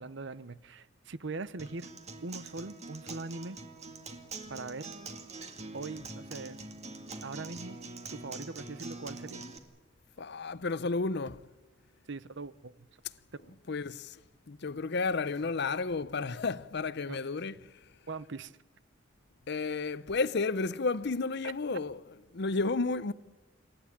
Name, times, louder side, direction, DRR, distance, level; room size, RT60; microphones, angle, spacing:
voice 1, 0.0-1.9 2.2-3.6 4.5-4.9 5.7-6.6 7.2-7.8 8.1-9.5 12.1-12.9 13.3-13.5 17.1-17.2 18.1-18.5, right 3 dB, 65° right, 0.8 m, -41 dB
Acoustic guitar, 1.6-9.6, right 3 dB, 35° right, 2.0 m, -44 dB
voice 2, 10.2-11.4 13.7-14.2 14.5-17.9 19.5-22.0 22.3-23.1, left 3 dB, 60° left, 0.7 m, -32 dB
27.0 x 15.0 x 10.0 m
head